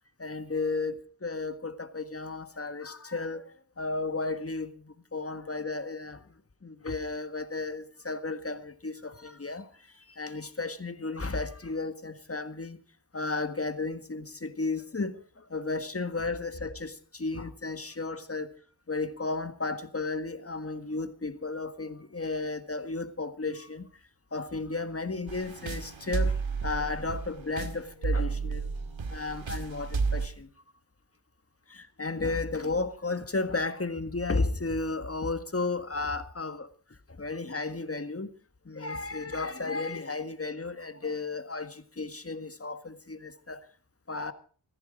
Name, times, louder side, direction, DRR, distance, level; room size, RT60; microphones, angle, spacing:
voice 1, 0.2-3.5 3.8-6.2 6.6-9.7 10.2-12.8 13.1-18.5 18.9-23.9 24.3-26.4 26.6-28.7 29.1-30.5 31.7-36.7 37.2-38.3 38.6-43.6 44.1-44.3, left 3 dB, 30° left, 1.6 m, -33 dB
sound 1, 25.3-30.3, right 4 dB, 80° right, 1.9 m, -31 dB
15.0 x 14.0 x 5.1 m
wide cardioid pair, 65°, 46 cm